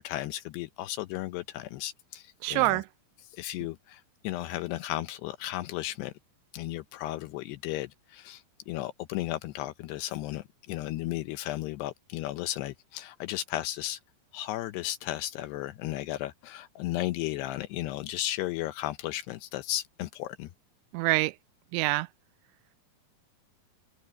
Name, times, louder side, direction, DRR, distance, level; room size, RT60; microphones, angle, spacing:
voice 1, 0.0-2.8 3.3-6.1 6.5-14.0 14.3-20.5, left 15 dB, 80° left, 2.5 m, -34 dB
voice 2, 2.4-2.9 20.9-21.3 21.7-22.1, right 22 dB, 85° right, 2.9 m, -25 dB
omnidirectional pair, 5.3 m